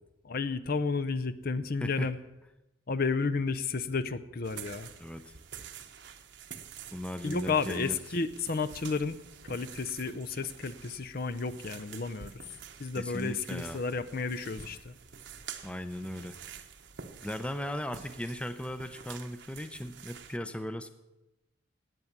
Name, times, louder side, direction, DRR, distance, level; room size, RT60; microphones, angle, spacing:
voice 1, 0.2-2.2 2.9-4.9 7.2-9.2 9.4-12.3 12.8-14.9, left 4 dB, 45° left, 11 dB, 0.6 m, -32 dB
sound 1, 4.4-20.4, right 7 dB, 55° right, 1.0 m, -48 dB
voice 2, 5.0-5.3 6.9-8.0 13.0-13.8 15.6-16.4 17.2-20.9, left 1 dB, 5° left, 11 dB, 0.6 m, -37 dB
17.0 x 9.5 x 7.3 m, 0.97 s
head